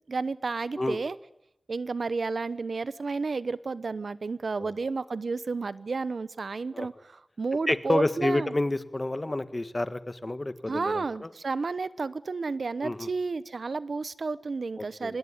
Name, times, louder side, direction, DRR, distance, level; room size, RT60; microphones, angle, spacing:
voice 1, 0.1-1.2 1.7-8.5 10.7-15.2, right 4 dB, 85° right, 16 dB, 0.9 m, -31 dB
voice 2, 7.7-11.3 12.8-13.1 14.8-15.2, left 2 dB, 30° left, 11 dB, 1.7 m, -29 dB
26.0 x 20.5 x 10.0 m, 0.80 s
wide cardioid pair, 75°, 0 cm